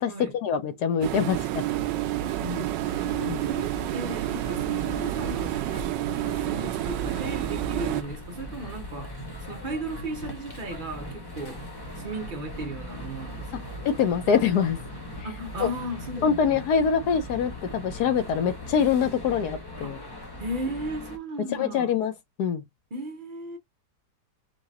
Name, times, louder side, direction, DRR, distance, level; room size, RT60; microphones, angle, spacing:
voice 1, 0.0-1.6 3.2-3.4 13.8-14.8 15.6-15.7 16.2-20.0 21.5-22.1 22.4-22.6, left 7 dB, 70° left, 1.2 m, -24 dB
sound 1, 1.0-8.0, right 13 dB, 80° right, 1.2 m, -29 dB
voice 2, 2.4-5.6 6.2-11.6 12.0-13.8 15.2-16.6 19.8-19.9 20.4-22.0 22.9-23.6, right 1 dB, 50° right, 0.6 m, -36 dB
sound 2, 2.8-21.2, equal, 20° left, 0.7 m, -40 dB
4.8 x 2.3 x 4.0 m
omnidirectional pair, 2.0 m